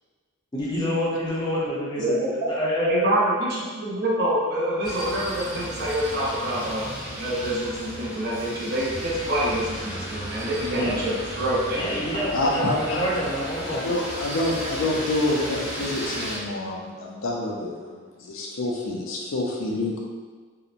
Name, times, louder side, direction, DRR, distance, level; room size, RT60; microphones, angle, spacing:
voice 1, 0.5-2.2 2.5-3.0 10.7-10.9 11.8-13.9, equal, 20° left, -7 dB, 0.6 m, -27 dB
voice 2, 2.0-2.3 2.8-11.8, right 1 dB, 55° right, -6 dB, 0.6 m, -26 dB
sound 1, 4.8-16.4, equal, 25° right, 1.3 m, -34 dB
voice 3, 12.3-13.1 13.7-20.0, left 2 dB, 70° left, -1 dB, 0.4 m, -27 dB
2.8 x 2.1 x 2.4 m, 1.5 s
head